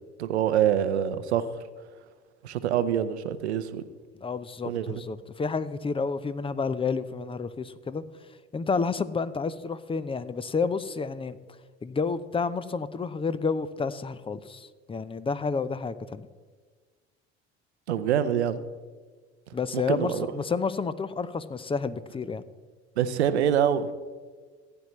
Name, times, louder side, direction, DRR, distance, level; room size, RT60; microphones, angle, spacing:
voice 1, 0.2-1.5 2.4-3.9 4.6-5.0 17.9-18.6 19.7-20.3 23.0-23.9, right 9 dB, 80° right, 13 dB, 0.7 m, -25 dB
voice 2, 4.2-8.0 8.5-11.4 11.8-16.3 19.5-22.4, left 4 dB, 15° left, 15 dB, 0.6 m, -30 dB
16.0 x 9.5 x 3.1 m, 1.5 s
hypercardioid pair, 65°, 33 cm